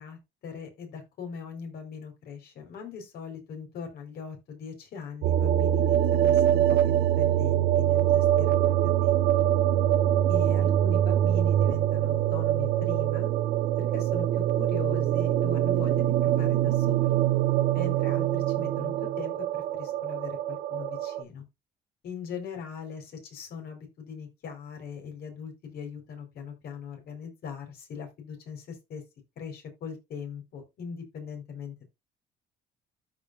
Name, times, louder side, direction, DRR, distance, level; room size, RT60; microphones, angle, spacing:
voice 1, 0.0-9.5 10.3-13.3 13.8-17.2 17.7-21.4 22.0-29.0 29.4-31.9, left 6 dB, 65° left, 4.3 m, -40 dB
sound 1, 5.2-21.2, right 12 dB, 80° right, 1.2 m, -24 dB
13.5 x 5.3 x 2.5 m
cardioid pair, 110°, 17 cm